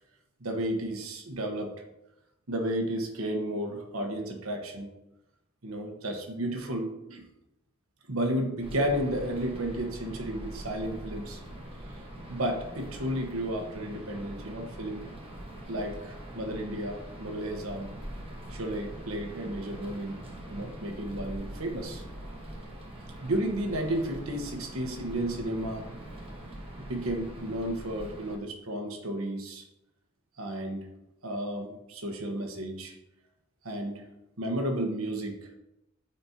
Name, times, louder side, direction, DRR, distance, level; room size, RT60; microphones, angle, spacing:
voice 1, 0.4-1.7 2.5-4.9 5.6-7.2 8.1-11.4 12.3-15.0 15.7-17.9 18.5-20.2 20.5-22.0 23.1-25.8 26.8-29.6 30.4-30.8 31.2-32.9 33.6-34.0 34.4-35.5, right 1 dB, 85° right, 3 dB, 1.1 m, -32 dB
sound 1, 8.6-28.4, right 1 dB, 25° right, 1.1 m, -43 dB
9.2 x 4.4 x 2.8 m, 0.90 s
head